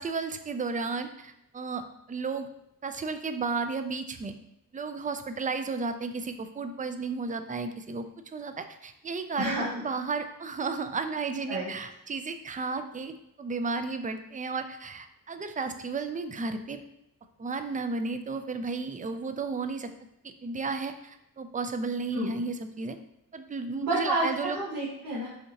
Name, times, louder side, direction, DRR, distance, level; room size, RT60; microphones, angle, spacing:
voice 1, 0.0-2.5 2.8-4.3 4.7-8.1 8.3-13.1 13.4-16.8 17.4-19.9 20.4-23.0 23.3-24.6, right 4 dB, 25° right, 8 dB, 0.4 m, -33 dB
voice 2, 9.4-9.7 11.5-11.7 22.1-22.3 23.8-25.3, right 1 dB, 80° right, -9 dB, 1.6 m, -29 dB
6.4 x 2.8 x 2.9 m, 0.82 s
cardioid pair, 60°, 35 cm